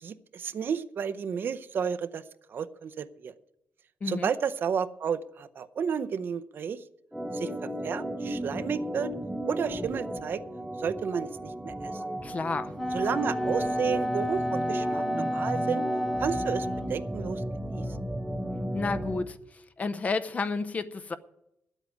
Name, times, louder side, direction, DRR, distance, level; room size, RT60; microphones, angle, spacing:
voice 1, 0.0-2.2 2.5-3.3 4.0-6.8 7.3-7.5 7.8-9.1 9.5-10.4 10.8-12.0 12.9-15.9 16.2-17.4 17.7-17.9, right 7 dB, 55° right, 0.6 m, -32 dB
Organ, 7.1-19.3, right 1 dB, 5° right, 0.7 m, -34 dB
voice 2, 12.2-12.7 18.7-19.4 19.8-21.2, left 4 dB, 35° left, 0.7 m, -31 dB
Wind instrument woodwind instrument, 12.7-17.1, left 1 dB, 15° left, 1.2 m, -31 dB
9.6 x 8.1 x 9.3 m
cardioid pair, 105°, 4 cm